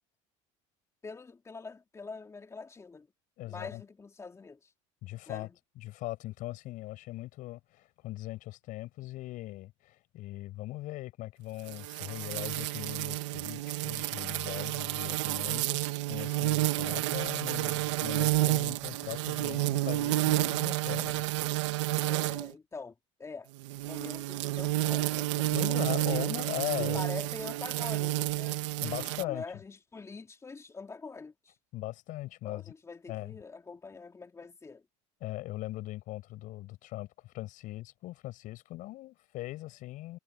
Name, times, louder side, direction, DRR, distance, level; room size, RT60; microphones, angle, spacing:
voice 1, 1.0-3.1 3.4-4.7 5.3-5.5 22.1-23.5 23.9-25.8 26.1-26.3 26.7-31.6 32.4-34.8, left 4 dB, 20° left, 3.2 m, -45 dB
voice 2, 3.4-3.8 5.0-5.5 5.8-21.2 22.2-22.3 25.5-27.0 28.8-29.4 31.7-32.6 33.1-33.4 35.2-40.2, left 17 dB, 60° left, 7.8 m, -40 dB
sound 1, 11.7-22.5 23.6-29.2, right 17 dB, 90° right, 1.8 m, -30 dB
supercardioid pair, 110°, 15 cm